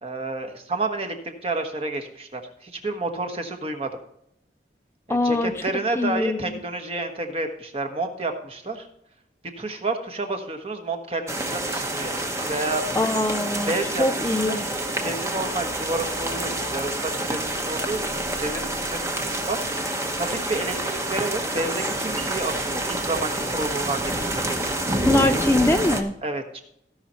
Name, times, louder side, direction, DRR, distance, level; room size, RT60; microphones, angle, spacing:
voice 1, 0.0-3.9 5.1-8.9 9.6-12.1 12.4-12.8 13.7-14.7 15.0-24.7 26.2-26.6, right 2 dB, 35° right, 5 dB, 1.3 m, -30 dB
voice 2, 5.1-5.5 6.0-6.4 13.0-13.7 14.0-14.6 25.0-26.1, left 2 dB, 15° left, 7 dB, 0.4 m, -23 dB
sound 1, 11.3-26.0, right 1 dB, 15° right, 1.0 m, -28 dB
16.5 x 5.7 x 4.3 m, 0.74 s
head